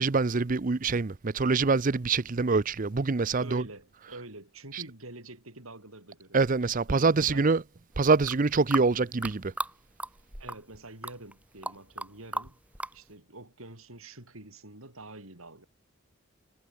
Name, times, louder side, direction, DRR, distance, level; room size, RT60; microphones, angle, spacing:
voice 1, 0.0-3.7 4.0-4.2 4.7-4.8 6.3-7.6 8.0-9.5, right 4 dB, 40° right, 0.6 m, -25 dB
voice 2, 3.4-7.5 10.4-12.6 12.9-15.7, right 2 dB, 80° right, 7.4 m, -47 dB
sound 1, 8.1-9.7 10.0-10.8 11.0-12.1 12.3-12.9, right 1 dB, 5° right, 2.1 m, -35 dB
head